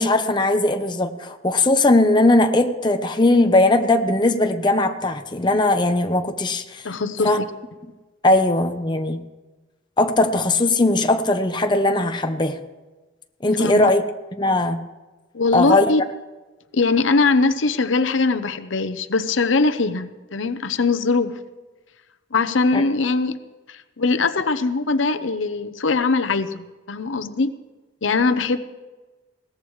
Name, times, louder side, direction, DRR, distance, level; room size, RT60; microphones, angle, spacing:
voice 1, 0.0-6.9 7.2-7.4 8.2-9.2 10.0-12.6 13.4-14.0 14.4-14.9 15.5-15.9 22.7-22.8, left 2 dB, 25° left, 6 dB, 0.8 m, -19 dB
voice 2, 6.8-7.3 13.6-13.9 15.3-16.0 16.7-21.4 22.3-23.4 23.7-27.5 28.0-28.6, left 3 dB, 85° left, 10 dB, 0.8 m, -21 dB
21.0 x 17.5 x 3.2 m, 1.2 s
head